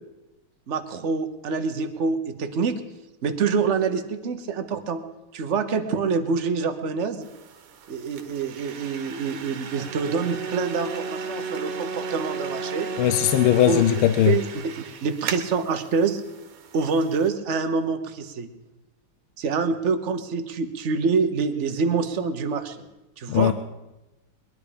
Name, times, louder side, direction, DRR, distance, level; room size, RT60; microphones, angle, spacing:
voice 1, 0.7-2.8 3.2-5.0 5.3-7.3 7.9-12.9 13.7-13.9 14.3-16.2 16.7-18.5 19.4-22.9 23.2-23.5, right 5 dB, 45° right, 8 dB, 1.0 m, -26 dB
sound 1, 7.2-17.3, right 7 dB, 75° right, 1.9 m, -40 dB
Brass instrument, 9.7-14.0, right 3 dB, 90° right, 0.5 m, -33 dB
voice 2, 13.0-14.4 23.3-23.5, left 12 dB, 75° left, 10 dB, 1.5 m, -19 dB
21.5 x 11.0 x 5.2 m, 1.0 s
omnidirectional pair, 2.3 m